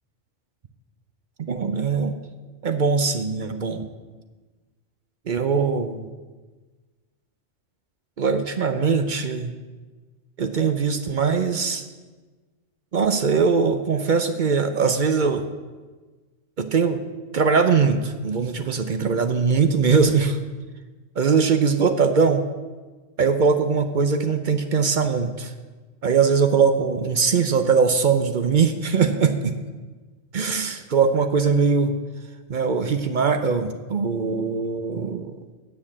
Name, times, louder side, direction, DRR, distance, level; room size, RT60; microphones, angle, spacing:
voice 1, 1.4-2.1 2.6-3.8 5.3-6.1 8.2-9.5 10.4-11.8 12.9-15.4 16.6-17.0 17.3-20.4 21.2-22.4 23.2-25.5 26.0-29.5 30.3-31.9 32.5-35.3, right 5 dB, 50° right, 8 dB, 0.7 m, -21 dB
8.7 x 7.3 x 7.3 m, 1.3 s
omnidirectional pair, 1.2 m